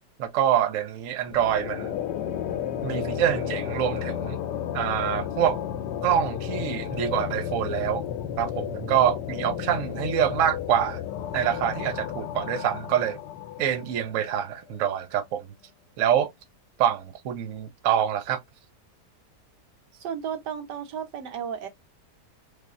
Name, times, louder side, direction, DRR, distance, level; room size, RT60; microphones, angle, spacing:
voice 1, 0.2-1.9 2.8-4.4 4.7-5.6 6.0-8.0 8.4-11.0 11.3-13.2 13.6-15.5 16.0-16.3 16.8-18.4, right 10 dB, 60° right, 0.9 m, -25 dB
sound 1, 1.3-14.4, left 9 dB, 90° left, 1.2 m, -33 dB
voice 2, 20.0-21.7, right 8 dB, 80° right, 1.4 m, -33 dB
3.4 x 3.2 x 2.4 m
omnidirectional pair, 1.8 m